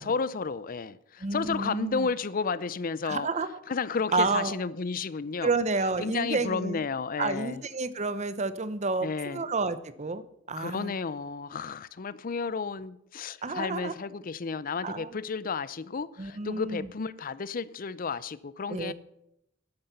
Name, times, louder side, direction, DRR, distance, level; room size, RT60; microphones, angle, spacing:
voice 1, 0.0-3.3 3.7-5.5 6.0-7.6 9.0-9.4 10.6-18.9, left 5 dB, 45° left, 0.5 m, -32 dB
voice 2, 1.2-2.1 3.0-3.5 4.1-4.6 5.4-6.8 7.2-10.9 13.4-13.9 14.8-15.1 16.2-16.9 18.7-18.9, right 3 dB, 35° right, 0.8 m, -30 dB
10.5 x 9.7 x 6.8 m
head